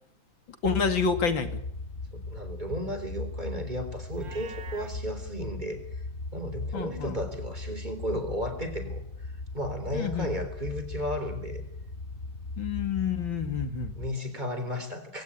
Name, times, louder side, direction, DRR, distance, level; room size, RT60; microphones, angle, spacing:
voice 1, 0.6-1.5 6.7-7.2 9.9-10.3 12.6-13.9, left 6 dB, 75° left, 8 dB, 3.1 m, -28 dB
sound 1, 0.6-14.1, left 3 dB, 35° left, 2.3 m, -38 dB
voice 2, 2.1-6.0 6.3-11.6 14.0-15.2, equal, 20° right, 9 dB, 3.9 m, -34 dB
Livestock farm animals working animals, 4.1-5.0, right 6 dB, 70° right, 2.3 m, -45 dB
25.0 x 17.5 x 8.6 m, 0.70 s
omnidirectional pair, 2.1 m